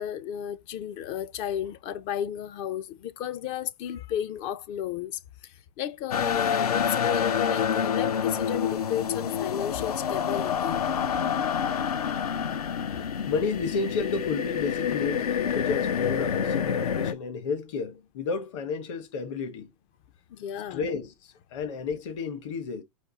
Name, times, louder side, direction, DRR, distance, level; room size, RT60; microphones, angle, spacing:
voice 1, 0.0-10.8 20.3-20.8, left 10 dB, 30° left, 0.4 m, -33 dB
sound 1, 6.1-17.1, left 7 dB, 90° left, 0.8 m, -27 dB
voice 2, 12.9-15.3 15.5-19.7 20.7-22.8, left 4 dB, 55° left, 1.3 m, -32 dB
5.1 x 2.3 x 3.9 m
hypercardioid pair, 135°, 19 cm